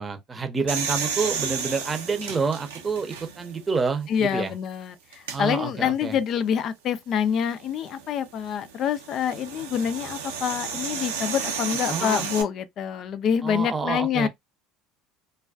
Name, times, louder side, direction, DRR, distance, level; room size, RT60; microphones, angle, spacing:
voice 1, 0.0-4.5 5.3-6.2 11.9-12.2 13.4-14.3, right 4 dB, 25° right, 0.7 m, -28 dB
sound 1, 0.7-3.6 4.1-4.2 5.1-5.4 7.5-12.4, right 6 dB, 85° right, 0.7 m, -32 dB
voice 2, 4.1-14.3, left 8 dB, 50° left, 0.4 m, -26 dB
2.3 x 2.2 x 2.4 m
hypercardioid pair, 70°, 0 cm